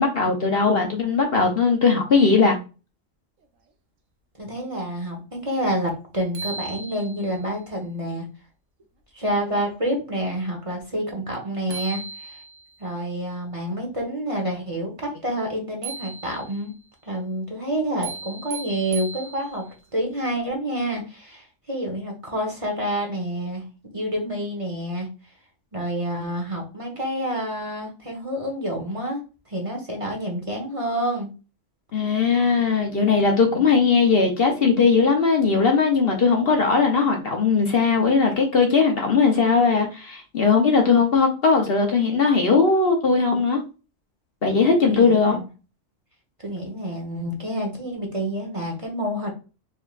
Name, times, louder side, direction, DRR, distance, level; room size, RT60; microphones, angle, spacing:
voice 1, 0.0-2.6 31.9-43.6 44.4-45.4, left 4 dB, 55° left, 1.0 m, -19 dB
voice 2, 4.4-8.2 9.1-12.4 12.8-16.7 17.0-19.6 19.9-23.6 23.9-25.1 25.7-31.3 44.9-45.5 46.4-49.3, right 1 dB, 30° right, 1.0 m, -28 dB
sound 1, 5.9-6.0 6.3-7.4 11.3-11.4 11.7-12.8 15.8-16.7 18.0-19.8, right 5 dB, 80° right, 1.2 m, -36 dB
4.5 x 3.5 x 2.4 m
omnidirectional pair, 1.3 m